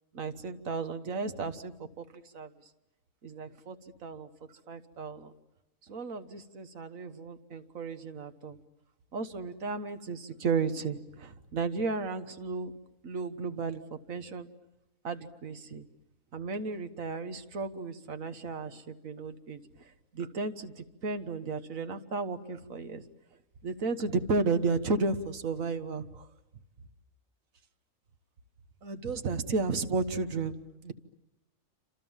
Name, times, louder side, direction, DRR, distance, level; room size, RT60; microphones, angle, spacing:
voice 1, 0.1-2.1 2.3-2.5 3.2-3.8 4.0-4.3 4.7-5.3 5.8-8.6 9.1-12.7 13.0-14.5 15.0-15.9 16.3-19.6 20.1-23.0 23.6-26.3 28.8-30.6 30.8-30.9, right 4 dB, 90° right, 9 dB, 1.7 m, -33 dB
29.0 x 26.5 x 7.3 m, 0.97 s
omnidirectional pair, 1.4 m